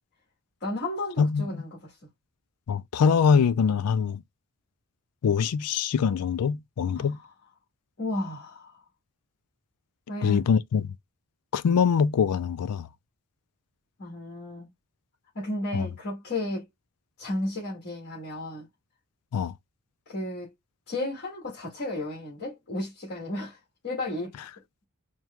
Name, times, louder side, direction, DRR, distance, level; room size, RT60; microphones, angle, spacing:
voice 1, 0.6-2.0 6.9-7.2 8.0-8.8 10.1-10.4 14.0-14.7 15.3-16.7 17.2-18.7 20.1-20.5 20.9-23.6 23.8-24.3, left 1 dB, 50° left, 1.8 m, -33 dB
voice 2, 1.2-1.6 2.7-4.2 5.2-7.2 10.2-10.9 11.5-12.9 15.7-15.9 19.3-19.5, left 6 dB, 85° left, 0.4 m, -23 dB
4.5 x 2.2 x 3.5 m
head